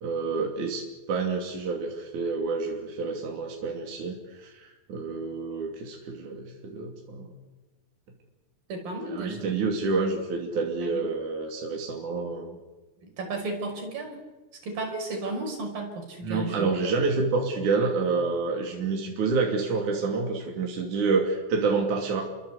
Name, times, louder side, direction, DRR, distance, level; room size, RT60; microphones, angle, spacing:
voice 1, 0.0-7.3 9.1-12.6 16.2-22.2, right 4 dB, 60° right, 0 dB, 4.2 m, -28 dB
voice 2, 8.7-9.5 10.8-11.0 13.0-14.2 14.6-16.7, right 2 dB, 80° right, 3 dB, 7.1 m, -34 dB
29.0 x 24.5 x 8.3 m, 1.2 s
omnidirectional pair, 4.0 m